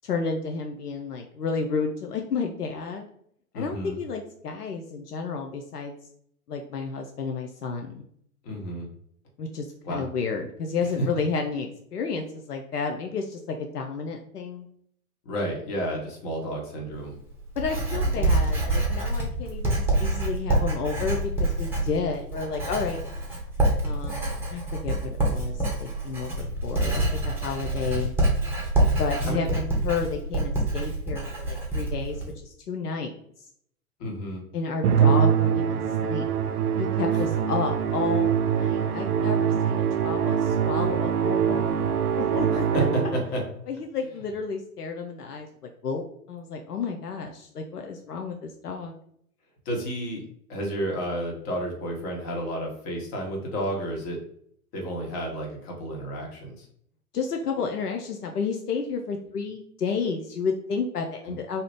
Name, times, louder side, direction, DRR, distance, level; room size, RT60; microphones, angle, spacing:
voice 1, 0.0-3.1 3.5-5.9 6.5-8.1 9.4-14.7 17.6-23.0 23.8-28.1 29.0-33.2 34.5-36.3 36.8-42.7 43.7-48.9 57.1-61.6, left 5 dB, 85° left, 3 dB, 0.5 m, -31 dB
voice 2, 3.5-4.0 8.4-8.9 9.8-10.1 15.2-17.1 18.1-18.3 29.3-29.5 34.0-34.4 37.1-37.2 42.7-43.4 49.6-50.2 50.5-54.2 54.7-56.6 61.3-61.4, right 1 dB, 40° left, 0 dB, 1.2 m, -31 dB
Writing, 16.9-32.3, right 1 dB, 5° right, 0.7 m, -26 dB
Musical instrument, 34.8-43.4, right 8 dB, 75° right, 0.5 m, -23 dB
2.7 x 2.4 x 3.4 m, 0.67 s
figure-of-eight pair, 100°, 45 cm